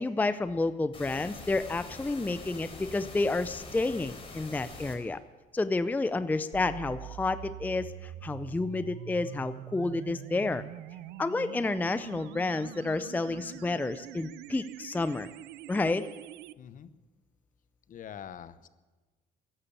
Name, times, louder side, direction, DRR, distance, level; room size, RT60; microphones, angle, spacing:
voice 1, 0.0-5.2 5.5-10.6 11.2-15.3 15.7-16.1, left 3 dB, 10° left, 13 dB, 0.5 m, -30 dB
sound 1, 0.9-4.9, left 3 dB, 35° left, 3.9 m, -44 dB
sound 2, 6.5-16.5, right 16 dB, 90° right, 0.4 m, -44 dB
voice 2, 16.6-16.9 17.9-18.7, left 9 dB, 50° left, 13 dB, 0.9 m, -44 dB
13.5 x 11.0 x 8.5 m, 1.2 s
cardioid pair, 110°, 17 cm